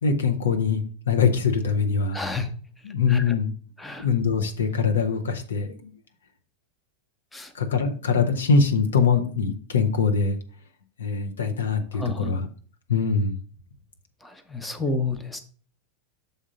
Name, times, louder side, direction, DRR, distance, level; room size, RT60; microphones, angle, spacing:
voice 1, 0.0-2.2 2.8-3.5 4.0-5.9 7.5-10.4 11.0-12.5 12.9-13.3, left 5 dB, 65° left, 5 dB, 0.9 m, -23 dB
voice 2, 2.1-2.5 3.1-3.3 3.8-4.1 7.3-7.5 11.9-12.4 14.2-15.4, left 3 dB, 5° left, 7 dB, 0.9 m, -30 dB
6.8 x 3.7 x 5.1 m, 0.43 s
figure-of-eight pair, 90°, 0 cm